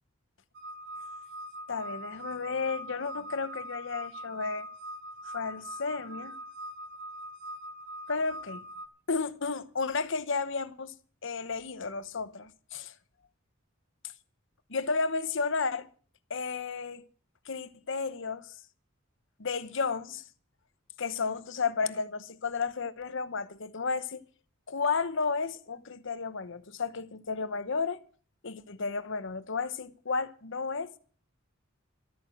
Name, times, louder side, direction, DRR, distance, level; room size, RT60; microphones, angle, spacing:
sound 1, 0.5-8.9, right 1 dB, 60° right, 1.2 m, -42 dB
voice 1, 1.7-4.7 5.3-6.4 8.1-8.6 9.1-10.9 11.2-12.9 14.7-15.9 16.3-17.0 17.5-18.5 19.4-20.2 21.0-24.2 24.7-28.0 28.4-30.9, left 4 dB, 65° left, 1.0 m, -32 dB
13.0 x 8.7 x 7.7 m
head